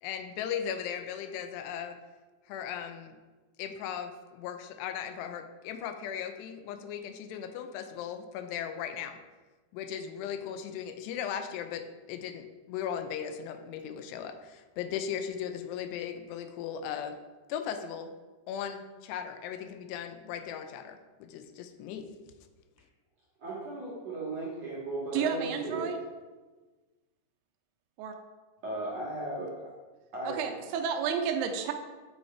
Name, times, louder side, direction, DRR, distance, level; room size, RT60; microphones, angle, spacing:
voice 1, 0.0-2.0 2.5-3.2 3.6-9.2 9.7-17.2 17.5-18.1 18.5-22.1, left 8 dB, 85° left, 8 dB, 2.7 m, -37 dB
voice 2, 23.4-25.8 28.6-29.6 30.1-30.7, right 2 dB, 50° right, -6 dB, 2.1 m, -36 dB
voice 3, 25.1-26.0 28.0-28.1 30.3-31.7, right 7 dB, 80° right, 5 dB, 2.0 m, -31 dB
8.8 x 5.9 x 4.4 m, 1.3 s
omnidirectional pair, 4.9 m